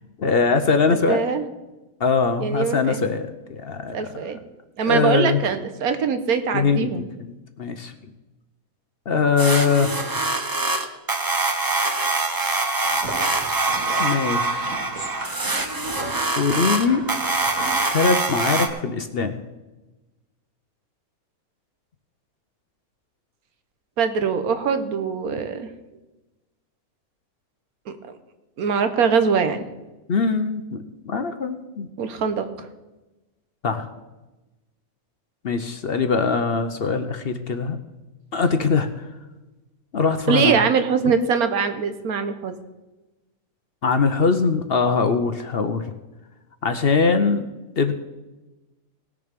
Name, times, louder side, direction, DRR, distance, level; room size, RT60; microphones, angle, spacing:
voice 1, 0.2-1.2 2.0-4.3 4.8-5.4 6.5-6.9 7.2-7.9 9.1-9.9 14.0-14.7 16.4-17.0 17.9-19.4 30.1-31.9 33.6-33.9 35.4-37.8 38.3-39.1 39.9-40.6 43.8-45.8 46.6-47.4 47.8-47.9, left 5 dB, 50° left, 8 dB, 0.8 m, -22 dB
voice 2, 0.9-1.5 2.4-3.0 3.9-4.4 4.8-7.0 24.0-25.7 27.9-28.0 28.6-29.6 32.0-32.7 40.3-42.5, right 6 dB, 85° right, 9 dB, 1.4 m, -22 dB
sound 1, 9.4-18.7, right 3 dB, 20° right, 0.6 m, -24 dB
sound 2, 12.8-17.8, right 1 dB, 60° right, 2.6 m, -35 dB
18.0 x 6.9 x 5.1 m, 1.1 s
omnidirectional pair, 1.5 m